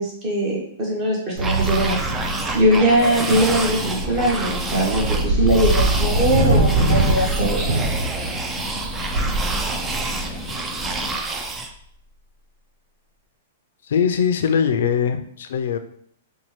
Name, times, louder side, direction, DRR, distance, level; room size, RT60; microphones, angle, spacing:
voice 1, 0.0-2.0 2.5-7.6, equal, 30° right, -4 dB, 1.4 m, -21 dB
sound 1, 1.4-11.7, right 3 dB, 15° right, 0.3 m, -29 dB
sound 2, 1.4-11.6, right 2 dB, 55° right, 0.9 m, -23 dB
sound 3, 2.1-11.2, left 2 dB, 25° left, 0.6 m, -35 dB
voice 2, 13.8-15.8, left 7 dB, 75° left, 8 dB, 0.4 m, -21 dB
4.2 x 2.2 x 3.1 m, 0.67 s
hypercardioid pair, 150°, 0 cm